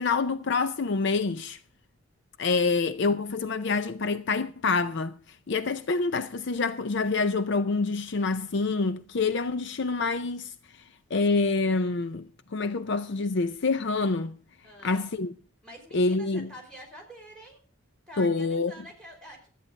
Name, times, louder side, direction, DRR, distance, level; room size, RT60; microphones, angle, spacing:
voice 1, 0.0-1.6 2.4-5.1 5.5-10.5 11.1-14.3 14.8-15.3 15.9-16.5 18.2-18.7, left 4 dB, 55° left, 0.5 m, -26 dB
voice 2, 14.6-15.0 15.6-17.6 18.1-19.5, equal, 5° left, 4.7 m, -47 dB
13.0 x 9.2 x 5.1 m
head